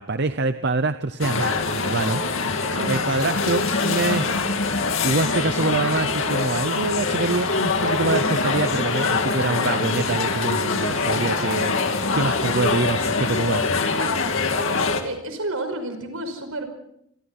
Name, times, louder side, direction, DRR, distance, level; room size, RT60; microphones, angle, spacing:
voice 1, 0.0-2.2 2.9-4.3 4.7-13.9, right 3 dB, 50° right, 11 dB, 0.7 m, -25 dB
sound 1, 1.2-15.0, left 4 dB, 65° left, 2.4 m, -23 dB
voice 2, 2.7-3.0 15.0-16.6, right 1 dB, 75° right, 8 dB, 5.4 m, -30 dB
29.0 x 24.0 x 4.3 m, 0.72 s
head